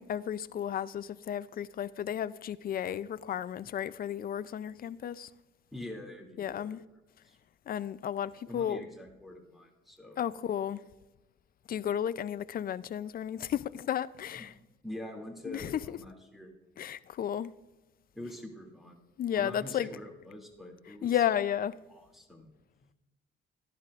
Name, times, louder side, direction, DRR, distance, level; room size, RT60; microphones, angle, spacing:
voice 1, 0.0-5.3 6.4-6.8 7.7-8.9 10.2-10.8 11.7-14.5 15.5-16.0 16.8-17.5 19.2-19.9 21.0-21.7, left 9 dB, 45° left, 0.5 m, -33 dB
voice 2, 5.7-6.8 7.2-7.4 8.5-10.2 14.3-14.4 14.8-16.5 18.1-19.0 19.4-21.2 21.9-22.5, left 1 dB, ahead, 2.5 m, -45 dB
13.0 x 11.0 x 2.5 m
cardioid pair, 90°, 20 cm